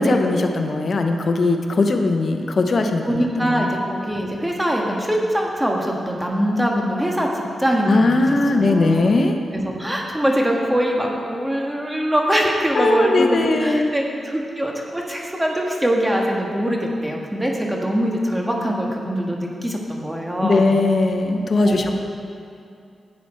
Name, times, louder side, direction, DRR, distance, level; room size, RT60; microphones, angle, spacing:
voice 1, 0.0-3.7 7.9-9.4 12.7-13.9 20.4-21.9, left 2 dB, 55° left, 4 dB, 0.8 m, -19 dB
voice 2, 3.0-8.3 8.5-9.1 9.5-20.7 21.7-21.9, equal, 10° right, 0 dB, 1.6 m, -23 dB
11.0 x 8.4 x 4.4 m, 2.4 s
cardioid pair, 60°, 0 cm